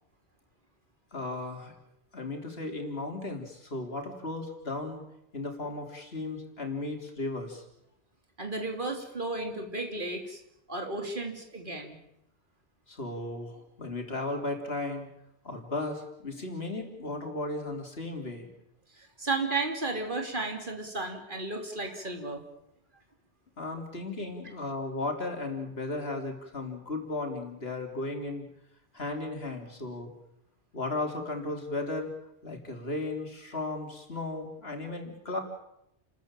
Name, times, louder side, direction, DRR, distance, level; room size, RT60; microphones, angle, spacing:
voice 1, 1.1-1.7 2.1-5.1 5.3-7.6 12.9-15.1 15.4-18.5 23.6-28.5 28.9-30.1 30.7-32.1 32.4-35.4, left 2 dB, 65° left, 3 dB, 3.7 m, -35 dB
voice 2, 8.4-10.4 10.7-12.0 19.0-22.4, right 3 dB, 50° right, 4 dB, 3.4 m, -33 dB
29.5 x 14.0 x 9.0 m, 0.81 s
omnidirectional pair, 1.1 m